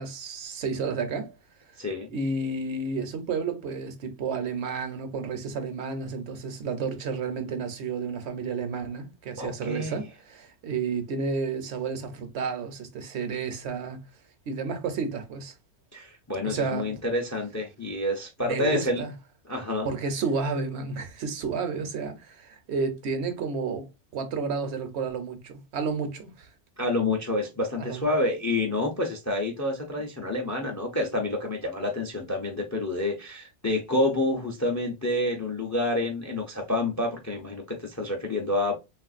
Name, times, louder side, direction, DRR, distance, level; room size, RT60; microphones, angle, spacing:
voice 1, 0.0-1.3 2.1-14.0 14.5-15.5 16.4-16.9 18.4-19.1 19.8-23.9 24.1-26.5 27.8-28.1, right 4 dB, 75° right, 0.9 m, -31 dB
voice 2, 1.8-2.1 9.4-10.0 15.9-19.0 19.5-19.9 26.8-38.7, left 2 dB, 25° left, 0.4 m, -28 dB
3.3 x 2.5 x 2.3 m
omnidirectional pair, 1.2 m